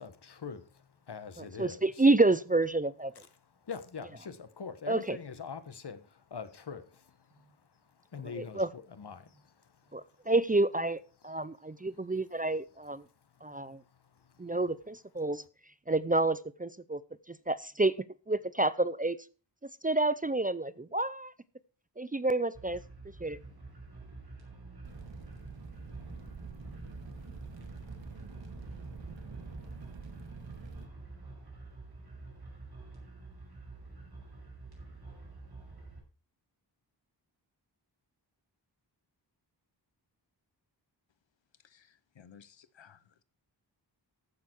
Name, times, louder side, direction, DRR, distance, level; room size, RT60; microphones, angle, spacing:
voice 1, 0.0-2.0 3.4-10.3 11.3-11.5 11.9-12.0 13.2-14.6, left 6 dB, 65° left, 1.3 m, -45 dB
voice 2, 1.6-3.1 4.9-5.2 8.4-8.7 9.9-13.0 13.4-13.8 14.4-15.4 15.9-17.0 17.3-17.9 18.3-19.2 19.6-21.3 22.0-22.8 23.2-23.4, right 2 dB, 20° right, 0.5 m, -29 dB
sound 1, 22.5-36.0, right 3 dB, 60° right, 5.5 m, -48 dB
sound 2, 24.8-30.8, right 4 dB, 80° right, 2.1 m, -47 dB
voice 3, 41.6-43.2, left 7 dB, 85° left, 1.0 m, -58 dB
14.5 x 6.9 x 4.5 m
wide cardioid pair, 100°, 44 cm